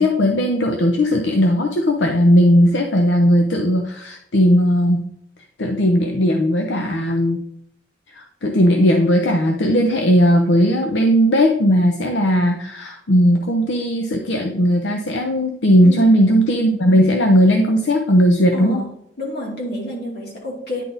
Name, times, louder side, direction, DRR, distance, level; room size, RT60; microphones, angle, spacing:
voice 1, 0.0-5.0 5.6-7.4 8.2-18.8, equal, 80° left, 4 dB, 0.7 m, -17 dB
voice 2, 15.8-16.3 18.5-18.9 19.2-20.8, equal, 60° left, -2 dB, 2.5 m, -28 dB
9.9 x 4.0 x 3.9 m, 0.73 s
head